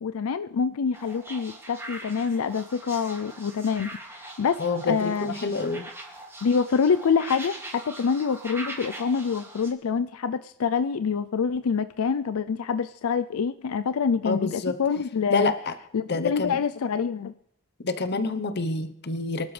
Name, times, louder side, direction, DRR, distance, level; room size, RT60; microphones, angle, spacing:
voice 1, 0.0-4.6 4.8-5.3 6.4-15.5 15.9-17.3, left 6 dB, 85° left, 12 dB, 0.4 m, -26 dB
sound 1, 0.9-9.7, right 1 dB, 10° right, 2.3 m, -41 dB
voice 2, 4.6-5.9 14.2-14.8 15.3-15.7 16.1-16.6 17.8-19.5, left 3 dB, 50° left, 10 dB, 0.9 m, -27 dB
24.5 x 12.0 x 3.3 m, 0.75 s
head